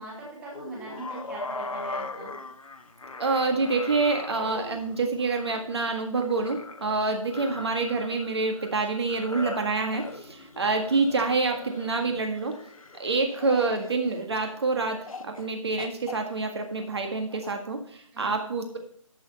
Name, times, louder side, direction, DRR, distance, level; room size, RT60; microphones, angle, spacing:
voice 1, 0.0-2.3 18.1-18.3, right 2 dB, 5° right, -4 dB, 2.3 m, -41 dB
sound 1, 0.5-14.6 15.1-15.5 15.8-17.5, left 3 dB, 85° left, 1.4 m, -40 dB
voice 2, 3.2-12.6 13.0-18.8, right 3 dB, 50° right, 4 dB, 1.8 m, -27 dB
11.0 x 7.9 x 4.2 m, 0.63 s
figure-of-eight pair, 165°, 17 cm